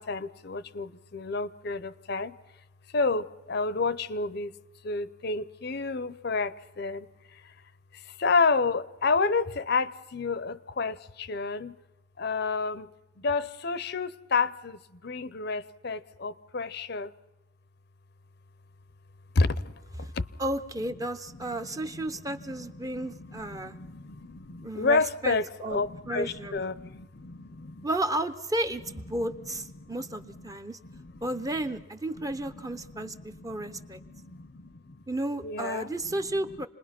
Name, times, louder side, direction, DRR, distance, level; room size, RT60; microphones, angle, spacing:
voice 1, 0.0-2.4 2.9-4.5 4.8-7.1 7.3-7.5 7.9-11.8 12.2-12.9 13.2-17.1 19.3-19.7 20.1-20.3 21.4-27.9 29.1-29.5 29.8-30.5 30.8-31.6 32.2-35.0 35.4-35.9 36.2-36.6, left 4 dB, 50° left, 0.7 m, -31 dB
voice 2, 20.4-23.7 24.6-25.8 26.1-26.5 27.8-30.8 31.2-34.0 35.1-36.7, right 1 dB, 15° right, 0.7 m, -33 dB
28.0 x 20.5 x 5.9 m
head